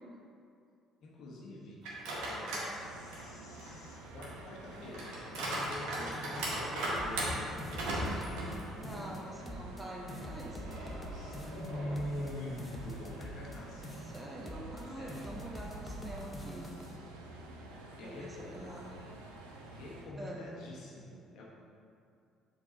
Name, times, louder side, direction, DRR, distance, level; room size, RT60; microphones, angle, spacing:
voice 1, 1.0-1.8 2.2-7.9 10.0-13.9 15.0-15.3 18.0-18.6 19.7-21.4, left 1 dB, 60° left, -4 dB, 1.2 m, -45 dB
sound 1, 1.8-2.7 3.1-9.2 9.6-9.7 10.7-12.1, right 1 dB, 65° right, 1.5 m, -38 dB
sound 2, 2.8-20.1, right 2 dB, 85° right, 0.6 m, -50 dB
sound 3, 7.0-8.6 8.8-9.8 10.1-13.6 13.8-14.8 15.1-17.0, equal, 25° left, 0.7 m, -45 dB
voice 2, 8.7-10.6 14.0-16.7 18.0-19.0 20.2-20.4, right 1 dB, 20° right, -2 dB, 1.3 m, -45 dB
7.1 x 3.9 x 4.0 m, 2.4 s
hypercardioid pair, 50°, 0 cm